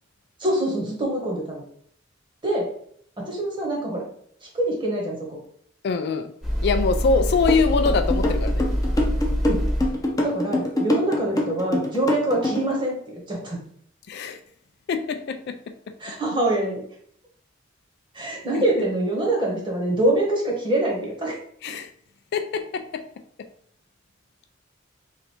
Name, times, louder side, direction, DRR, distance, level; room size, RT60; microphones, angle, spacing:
voice 1, 0.4-1.6 2.4-2.7 3.2-4.1 4.5-5.4 9.4-9.6 10.2-13.6 16.0-16.8 18.1-21.4, right 1 dB, 25° right, -1 dB, 1.1 m, -25 dB
voice 2, 5.8-6.3 6.6-8.6 14.1-14.4 14.9-15.6 18.5-18.6 21.6-21.9 22.3-23.0, left 4 dB, 55° left, 8 dB, 0.3 m, -24 dB
sound 1, 6.4-10.2, equal, ahead, 0.9 m, -25 dB
sound 2, 7.5-12.7, left 1 dB, 20° left, 0.6 m, -24 dB
3.2 x 2.6 x 4.2 m, 0.64 s
head